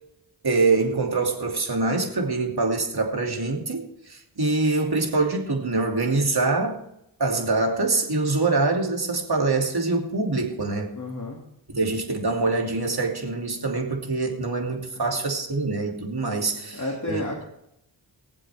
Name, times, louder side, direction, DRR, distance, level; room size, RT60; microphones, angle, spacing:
voice 1, 0.4-6.8 7.2-10.9 11.7-16.8 17.1-17.2, right 3 dB, 50° right, 1 dB, 2.8 m, -24 dB
voice 2, 11.0-11.4 14.9-15.1 16.7-17.4, left 1 dB, 40° left, -1 dB, 2.6 m, -31 dB
22.5 x 7.6 x 3.6 m, 0.79 s
cardioid pair, 55°, 47 cm